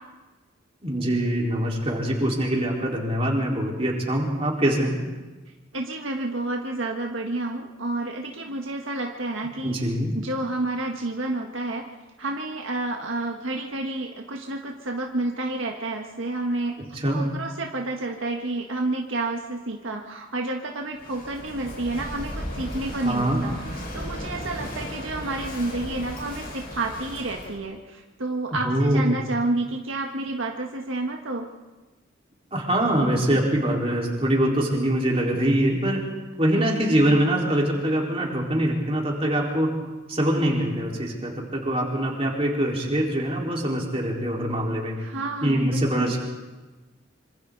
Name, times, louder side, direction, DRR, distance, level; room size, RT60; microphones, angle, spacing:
voice 1, 0.8-5.0 9.6-10.2 16.8-17.3 23.0-23.4 28.6-29.1 32.5-36.0 36.4-39.7 40.1-45.0 45.4-46.2, right 1 dB, 30° right, -3 dB, 4.5 m, -23 dB
voice 2, 5.7-11.8 12.2-31.5 36.5-37.0 45.0-46.2, right 2 dB, 75° right, 1 dB, 1.6 m, -30 dB
Walk footsteps / Wind / Waves surf, 21.0-27.6, equal, 50° left, 5.7 m, -36 dB
26.5 x 25.5 x 4.1 m, 1.2 s
head